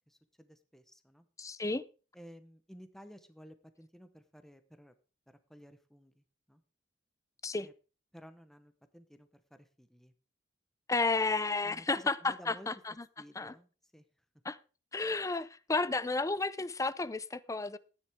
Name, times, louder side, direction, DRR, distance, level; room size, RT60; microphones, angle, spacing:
voice 1, 0.1-1.3 2.1-4.9 5.5-6.6 7.6-7.7 8.1-10.1 11.6-12.7 13.2-14.1, equal, ahead, 1.0 m, -55 dB
voice 2, 1.4-1.8 7.4-7.7 10.9-12.9 13.4-13.5 14.4-14.6 14.9-17.8, left 3 dB, 15° left, 0.5 m, -32 dB
13.5 x 9.6 x 3.6 m
head